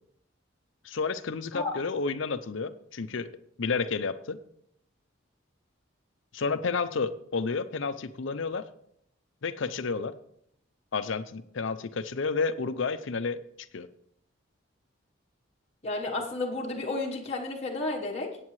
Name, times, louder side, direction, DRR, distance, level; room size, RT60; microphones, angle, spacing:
voice 1, 0.8-3.3 3.6-4.4 6.3-8.7 9.4-10.1 10.9-13.4 13.7-13.9, left 4 dB, 70° left, 12 dB, 0.6 m, -31 dB
voice 2, 15.8-18.4, left 2 dB, 30° left, -2 dB, 1.2 m, -32 dB
18.0 x 8.5 x 3.2 m, 0.73 s
head